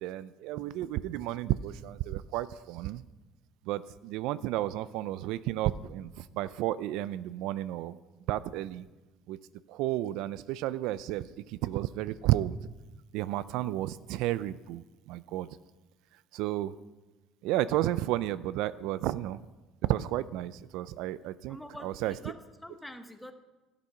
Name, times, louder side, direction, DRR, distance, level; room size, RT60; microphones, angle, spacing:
voice 1, 0.0-3.0 3.7-8.0 8.3-8.8 9.3-9.4 9.7-12.6 13.1-15.5 16.3-16.7 17.4-19.4 19.9-21.6 21.8-22.1, right 14 dB, 75° right, 16 dB, 0.4 m, -32 dB
voice 2, 21.5-23.3, left 1 dB, 5° left, 7 dB, 0.9 m, -46 dB
13.0 x 8.3 x 5.7 m, 1.2 s
cardioid pair, 135°, 0 cm